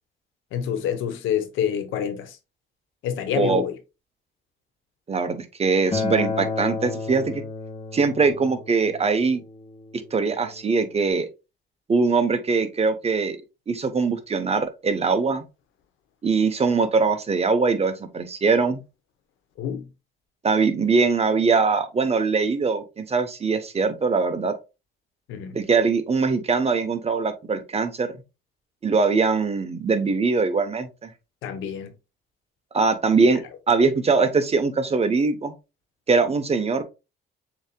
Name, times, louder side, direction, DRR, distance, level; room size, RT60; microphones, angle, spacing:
voice 1, 0.5-2.3 3.0-3.7 19.6-19.8 25.3-25.5 31.4-31.9, left 8 dB, 90° left, 0.8 m, -27 dB
voice 2, 3.3-3.7 5.1-7.4 7.9-9.4 10.1-11.3 11.9-13.4 13.7-15.4 16.2-18.8 20.4-24.5 25.5-28.1 28.8-31.1 32.7-33.4 33.7-35.5 36.1-36.8, right 4 dB, 30° right, 0.8 m, -22 dB
Acoustic guitar, 5.9-11.1, left 4 dB, 30° left, 1.0 m, -32 dB
6.9 x 2.8 x 2.2 m
cardioid pair, 90°, 20 cm